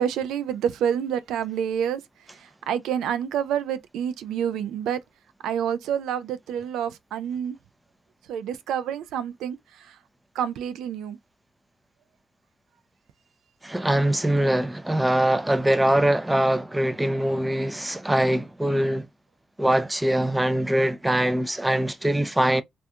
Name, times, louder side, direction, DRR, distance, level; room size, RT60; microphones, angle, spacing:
voice 1, 0.0-2.0 2.7-5.0 5.4-7.6 8.3-9.6 10.4-11.2, right 9 dB, 85° right, 0.3 m, -27 dB
voice 2, 13.6-19.1 19.6-22.6, right 1 dB, 10° right, 0.4 m, -22 dB
2.4 x 2.2 x 2.6 m
cardioid pair, 90°, 0 cm